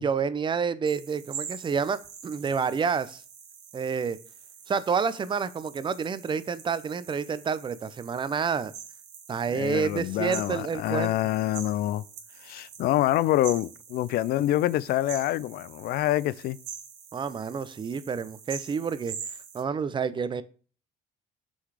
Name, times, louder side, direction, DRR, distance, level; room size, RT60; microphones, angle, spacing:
voice 1, 0.0-3.2 3.7-4.2 4.7-8.7 9.3-11.2 17.1-19.2 19.5-20.4, right 6 dB, 30° right, 0.6 m, -29 dB
sound 1, 0.8-19.6, right 8 dB, 75° right, 1.7 m, -44 dB
voice 2, 9.5-12.0 12.4-16.6, left 14 dB, 65° left, 0.4 m, -26 dB
6.1 x 4.0 x 4.8 m
cardioid pair, 110°, 17 cm